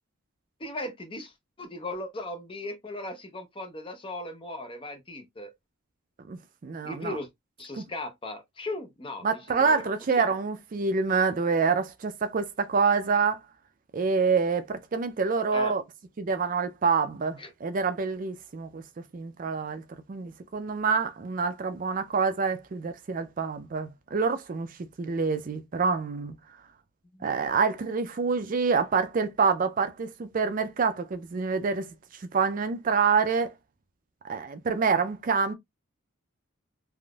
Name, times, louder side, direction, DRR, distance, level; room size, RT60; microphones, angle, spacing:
voice 1, 0.6-1.3 1.6-5.5 6.8-7.3 7.6-9.8 10.2-10.3 15.5-15.7 17.4-17.5 27.1-27.3, left 2 dB, 25° left, 0.7 m, -37 dB
voice 2, 6.3-7.2 7.8-7.9 9.2-13.4 13.9-15.8 16.2-19.8 20.1-26.4 27.2-31.9 32.3-33.5 34.2-35.5, right 5 dB, 40° right, 0.4 m, -27 dB
3.5 x 2.5 x 2.3 m
head